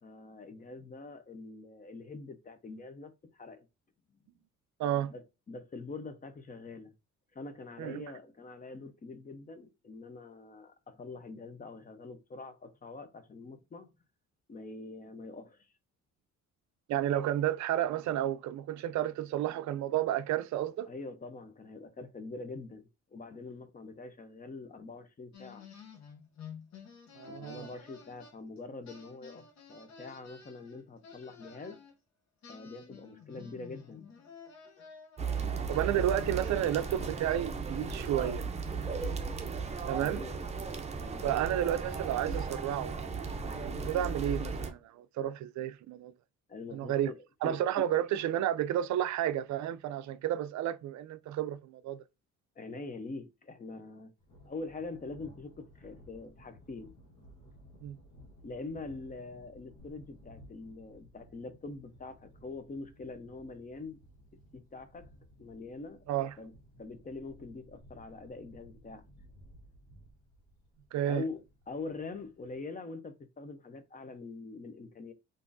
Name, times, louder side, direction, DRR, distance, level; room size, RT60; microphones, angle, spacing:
voice 1, 0.0-3.7 5.1-6.9 7.3-13.9 14.5-15.7 20.9-25.7 27.2-29.4 29.7-31.8 32.5-34.1 39.9-40.4 41.0-41.3 46.5-47.9 52.6-54.1 54.5-56.9 58.4-64.0 64.5-65.1 65.4-66.0 66.4-66.5 66.8-69.0 71.0-75.1, left 3 dB, 30° left, 0.6 m, -44 dB
voice 2, 4.8-5.1 7.8-8.0 16.9-20.9 27.2-27.7 35.7-38.4 39.9-40.2 41.2-43.0 43.6-46.1 46.7-47.1 47.4-52.0 57.8-58.0 66.1-66.3 70.9-71.2, right 11 dB, 70° right, 0.4 m, -31 dB
sound 1, 25.3-28.6 28.9-31.9 32.4-37.7, left 6 dB, 65° left, 0.9 m, -51 dB
sound 2, 35.2-44.7, right 5 dB, 20° right, 0.6 m, -36 dB
Thunder, 54.2-72.6, equal, 80° left, 1.3 m, -57 dB
3.5 x 2.5 x 2.6 m
cardioid pair, 90°, 30 cm